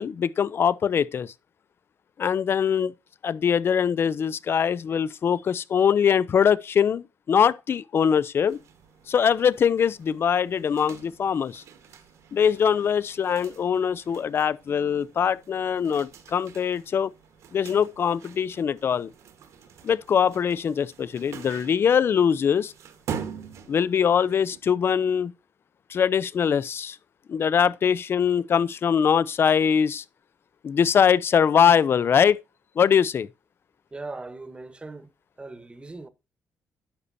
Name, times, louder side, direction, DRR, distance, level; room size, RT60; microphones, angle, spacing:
voice 1, 0.0-1.3 2.2-2.9 3.2-8.6 9.1-11.6 12.3-17.1 17.5-19.1 19.8-22.7 23.7-25.3 25.9-27.0 27.3-30.0 30.6-32.4 32.8-33.3, left 7 dB, 50° left, 0.6 m, -22 dB
sound 1, 8.5-24.6, right 7 dB, 70° right, 1.3 m, -44 dB
voice 2, 33.9-35.1 35.4-36.1, right 3 dB, 20° right, 1.1 m, -39 dB
10.5 x 6.8 x 2.7 m
cardioid pair, 85°, 5 cm